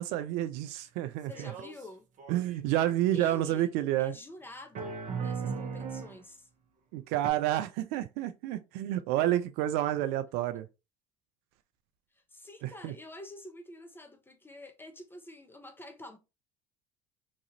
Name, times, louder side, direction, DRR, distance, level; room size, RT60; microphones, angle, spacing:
voice 1, 0.0-1.5 2.3-4.1 6.9-10.7 12.6-12.9, right 13 dB, 65° right, 0.4 m, -29 dB
voice 2, 1.3-2.1 3.1-3.7 4.0-6.5 12.1-16.2, left 1 dB, 10° left, 0.8 m, -48 dB
sound 1, 1.3-1.9 2.2-3.0 4.8-6.2 7.2-7.3, right 5 dB, 45° right, 0.8 m, -37 dB
2.9 x 2.4 x 2.7 m
hypercardioid pair, 70°, 18 cm